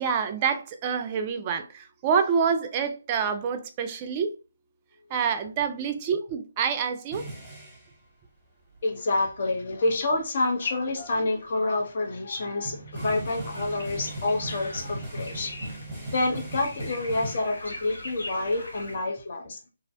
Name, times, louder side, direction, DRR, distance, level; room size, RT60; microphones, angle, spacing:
voice 1, 0.0-4.3 5.1-7.2, right 6 dB, 30° right, 0.4 m, -27 dB
sound 1, 7.1-7.9 9.3-9.4 9.8-9.9 10.4-10.7 12.4-17.4, right 1 dB, ahead, 1.0 m, -38 dB
voice 2, 8.8-15.5 16.1-19.6, left 2 dB, 50° left, 0.6 m, -28 dB
sound 2, 12.9-19.0, left 1 dB, 85° left, 1.0 m, -42 dB
2.4 x 2.1 x 2.6 m
figure-of-eight pair, 150°, 0 cm